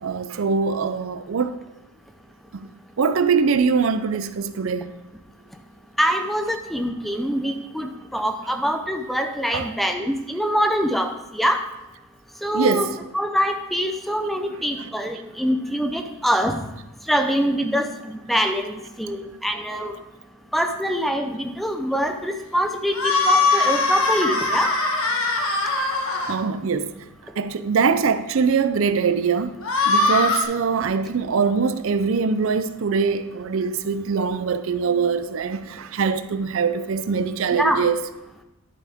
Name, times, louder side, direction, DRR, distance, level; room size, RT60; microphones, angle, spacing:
voice 1, 0.0-1.5 3.0-4.9 9.5-9.7 12.5-13.0 14.5-14.6 26.3-26.9 27.4-29.5 29.9-38.0, right 5 dB, 65° right, 0.5 m, -22 dB
voice 2, 6.0-11.6 12.4-12.9 13.1-16.6 17.1-19.9 20.5-24.7 37.6-37.9, equal, ahead, 0.5 m, -24 dB
sound 1, 22.9-26.3 29.6-30.4, left 3 dB, 70° left, 1.4 m, -21 dB
11.0 x 7.2 x 3.5 m
head